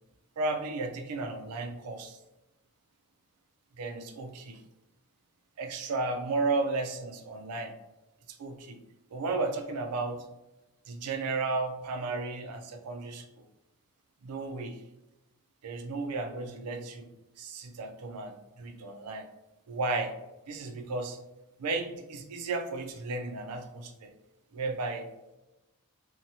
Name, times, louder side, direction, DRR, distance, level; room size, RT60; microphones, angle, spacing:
voice 1, 0.4-2.2 3.8-4.6 5.6-7.8 8.3-8.8 9.1-10.2 10.9-13.2 14.2-14.8 15.6-17.1 17.4-19.3 19.7-20.1 20.5-21.2 21.6-24.1 24.5-25.1, right 3 dB, 85° right, 5 dB, 0.4 m, -34 dB
2.8 x 2.2 x 2.7 m, 0.98 s
head